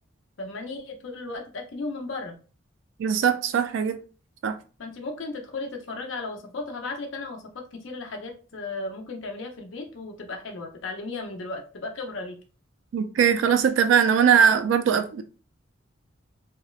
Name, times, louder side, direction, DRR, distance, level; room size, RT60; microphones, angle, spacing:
voice 1, 0.4-2.4 4.8-12.4, left 3 dB, 70° left, 0.6 m, -35 dB
voice 2, 3.0-4.0 4.4-4.5 12.9-15.2, right 7 dB, 70° right, 0.3 m, -20 dB
2.9 x 2.1 x 2.3 m
head